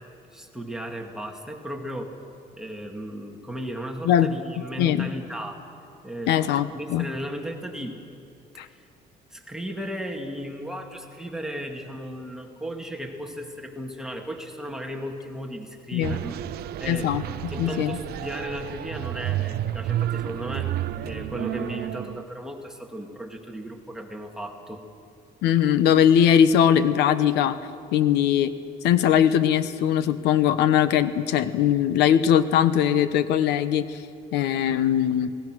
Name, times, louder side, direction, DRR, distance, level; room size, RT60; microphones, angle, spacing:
voice 1, 0.3-2.1 2.6-5.6 6.0-8.0 8.5-8.8 9.3-16.4 16.8-17.1 17.5-20.7 21.0-24.9, equal, 5° right, 1 dB, 2.4 m, -35 dB
voice 2, 4.8-5.1 6.3-7.1 8.6-8.7 15.9-16.2 16.9-18.0 25.4-27.6 27.9-28.5 28.8-34.0 34.3-35.3, left 9 dB, 90° left, 13 dB, 1.1 m, -21 dB
sound 1, 16.0-22.2, right 13 dB, 65° right, 0.7 m, -31 dB
29.0 x 19.0 x 6.3 m, 2.5 s
cardioid pair, 110°, 17 cm